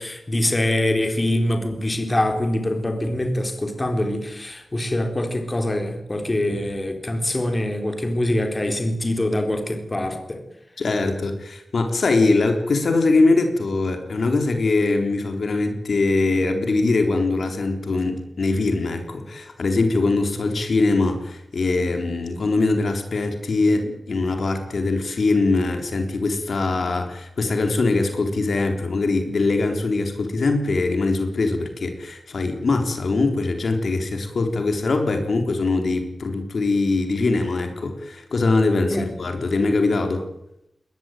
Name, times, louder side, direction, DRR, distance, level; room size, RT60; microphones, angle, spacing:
voice 1, 0.0-10.4 38.9-39.1, left 1 dB, 25° left, 5 dB, 4.0 m, -24 dB
voice 2, 10.8-40.2, left 3 dB, 65° left, 5 dB, 3.8 m, -22 dB
22.0 x 20.0 x 9.2 m, 0.81 s
wide cardioid pair, 130°, 0 cm